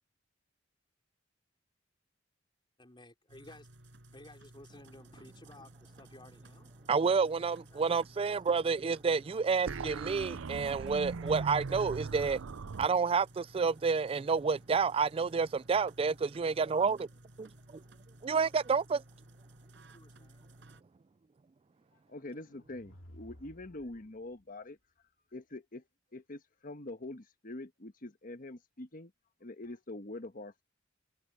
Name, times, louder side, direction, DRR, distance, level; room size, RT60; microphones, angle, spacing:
voice 1, 2.8-3.7 4.1-7.1 7.6-8.4 19.9-20.5, left 1 dB, 25° left, 4.5 m, -56 dB
sound 1, 3.3-20.8, right 1 dB, 65° right, 6.2 m, -57 dB
voice 2, 6.9-12.4 12.8-17.1 17.4-17.8 18.2-19.0, right 5 dB, 30° right, 0.3 m, -29 dB
sound 2, 9.7-12.9, right 4 dB, 85° right, 0.6 m, -39 dB
voice 3, 22.1-24.8 25.3-25.8 26.1-29.1 29.4-30.6, left 2 dB, 45° left, 1.4 m, -44 dB
sound 3, 22.5-24.4, equal, 90° left, 2.5 m, -56 dB
head